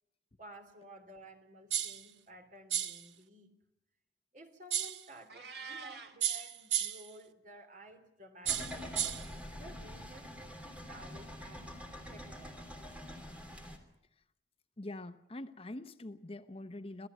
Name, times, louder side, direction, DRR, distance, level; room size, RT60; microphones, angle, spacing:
voice 1, 0.4-3.5 4.3-9.0 9.5-11.7 12.1-12.6, right 1 dB, 45° right, 6 dB, 3.4 m, -54 dB
sound 1, 1.7-2.1 2.7-3.1 4.7-5.1 6.2-7.1 8.5-9.3, right 9 dB, 90° right, 1.3 m, -34 dB
Meow, 5.3-6.2, right 5 dB, 65° right, 2.3 m, -45 dB
sound 2, 8.4-13.8, left 1 dB, 5° right, 3.0 m, -46 dB
voice 2, 14.8-17.1, left 1 dB, 30° left, 10 dB, 0.8 m, -44 dB
26.5 x 16.5 x 9.4 m, 0.84 s
head